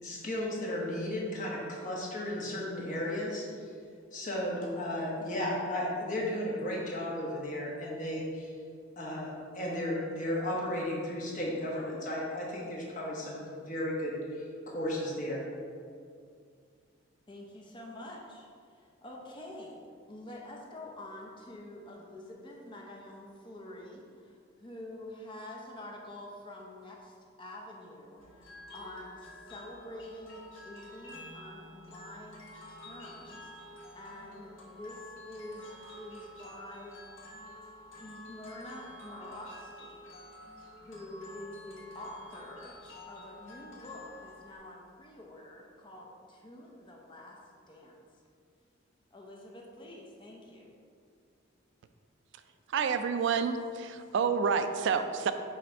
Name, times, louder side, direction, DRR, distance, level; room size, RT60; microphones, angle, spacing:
voice 1, 0.0-3.4 4.1-8.5 9.0-15.4, left 1 dB, 40° left, -4 dB, 1.2 m, -34 dB
voice 2, 17.3-19.8 20.1-32.4 32.7-35.7 36.0-37.4 38.0-40.1 40.9-42.8 43.1-47.4 47.7-47.9 49.1-50.7, left 1 dB, 25° left, -2 dB, 0.6 m, -47 dB
sound 1, 28.2-44.6, left 1 dB, 70° left, 1.2 m, -50 dB
voice 3, 52.7-55.3, right 6 dB, 60° right, 9 dB, 0.3 m, -29 dB
5.6 x 3.3 x 5.2 m, 2.2 s
head